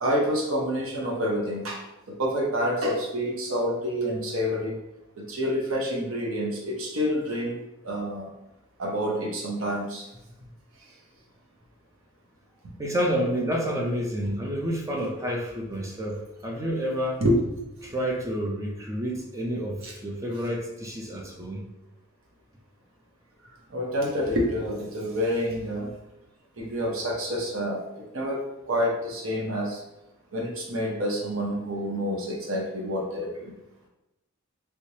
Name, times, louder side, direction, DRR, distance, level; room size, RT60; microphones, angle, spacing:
voice 1, 0.0-1.8 2.1-4.7 5.2-8.3 8.8-10.1 17.2-17.4 19.8-19.9 23.7-25.9 26.6-28.4 28.7-29.8 30.3-33.5, equal, 70° right, -2 dB, 0.8 m, -28 dB
voice 2, 12.8-17.2 17.8-21.6, equal, 15° right, -1 dB, 0.4 m, -29 dB
3.2 x 3.2 x 2.7 m, 0.94 s
head